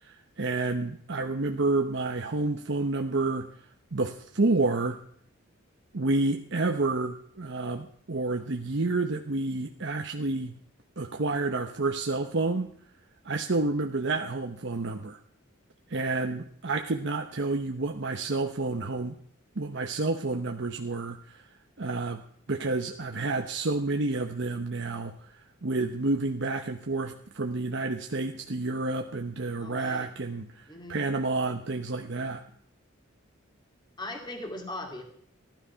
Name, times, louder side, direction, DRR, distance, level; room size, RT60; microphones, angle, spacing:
voice 1, 0.0-3.5 3.9-5.0 5.9-10.5 11.0-12.7 13.2-15.2 15.9-19.1 19.6-21.4 21.8-22.2 22.5-32.4, right 3 dB, 60° right, 4 dB, 0.9 m, -29 dB
voice 2, 29.6-30.1 30.7-31.0 34.0-35.0, left 1 dB, 20° left, 3 dB, 2.3 m, -39 dB
15.5 x 12.0 x 5.7 m, 0.63 s
head